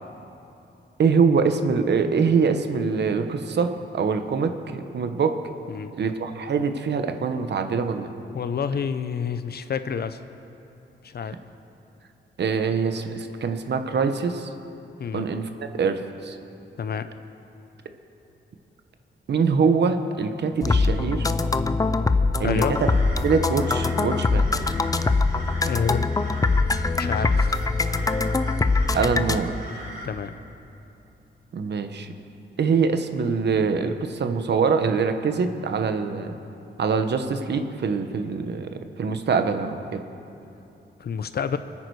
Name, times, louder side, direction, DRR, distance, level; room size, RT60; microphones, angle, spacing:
voice 1, 1.0-5.4 6.0-8.1 12.4-14.5 15.1-16.4 19.3-21.3 22.4-22.9 23.2-24.5 28.9-29.6 31.5-32.1 32.6-36.3 36.8-40.0, right 5 dB, 65° right, 7 dB, 1.0 m, -24 dB
voice 2, 8.3-10.2 11.0-11.4 15.0-15.2 16.8-17.1 22.4-22.8 25.6-26.2 27.0-27.6 30.0-30.4 41.0-41.6, left 7 dB, 55° left, 11 dB, 0.7 m, -28 dB
sound 1, 20.6-29.4, left 3 dB, 20° left, 0.4 m, -23 dB
sound 2, 22.7-30.1, equal, 45° right, 3.7 m, -40 dB
26.0 x 9.8 x 4.8 m, 2.9 s
wide cardioid pair, 150°, 19 cm